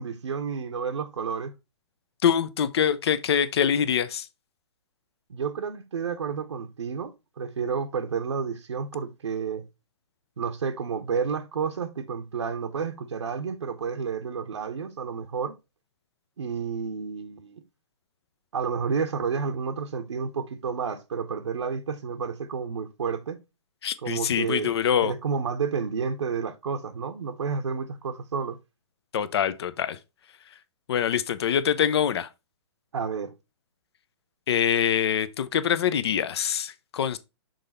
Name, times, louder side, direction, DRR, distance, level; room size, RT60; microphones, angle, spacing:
voice 1, 0.0-1.5 5.3-9.6 10.4-15.5 16.4-17.6 18.5-23.4 24.0-24.7 25.0-28.6 32.9-33.3, right 6 dB, 80° right, 0.8 m, -30 dB
voice 2, 2.2-4.3 23.8-25.1 29.1-30.0 30.9-32.3 34.5-37.2, left 8 dB, 60° left, 0.7 m, -24 dB
6.5 x 3.9 x 4.0 m
hypercardioid pair, 125°, 15 cm